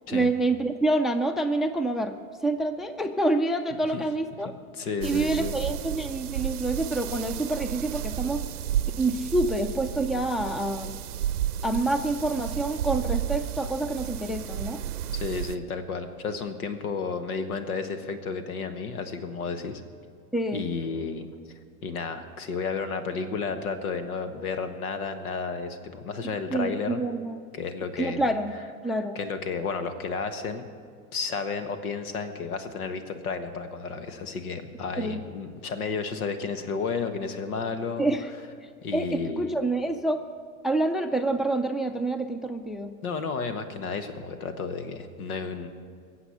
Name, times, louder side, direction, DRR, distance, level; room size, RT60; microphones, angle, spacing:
voice 1, 0.1-2.2 2.4-4.5 5.0-8.5 9.0-10.9 11.6-14.8 20.3-20.6 26.5-27.5 28.0-28.6 28.8-29.2 35.0-35.2 38.0-38.3 38.6-39.1 39.4-40.2 40.6-42.9, right 2 dB, ahead, 9 dB, 0.5 m, -27 dB
voice 2, 4.4-5.6 15.1-19.8 20.5-21.3 21.8-27.0 27.5-28.3 28.9-30.7 31.1-38.1 38.8-39.5 43.0-45.7, left 5 dB, 75° left, 9 dB, 1.5 m, -32 dB
sound 1, 5.0-15.6, right 11 dB, 85° right, 0.7 m, -32 dB
22.0 x 8.1 x 5.8 m, 2.2 s
hypercardioid pair, 90°, 44 cm